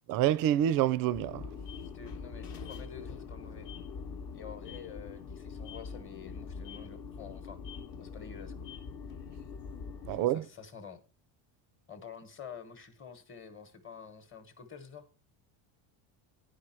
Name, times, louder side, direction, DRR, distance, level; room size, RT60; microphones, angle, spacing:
voice 1, 0.1-1.5 10.0-10.4, right 11 dB, 45° right, 0.4 m, -27 dB
sound 1, 1.1-10.2, left 5 dB, 45° left, 1.0 m, -43 dB
voice 2, 1.9-3.7 4.3-7.6 8.0-8.7 10.1-11.0 11.9-15.1, left 6 dB, 25° left, 1.1 m, -48 dB
10.0 x 4.9 x 4.4 m
cardioid pair, 140°, 49 cm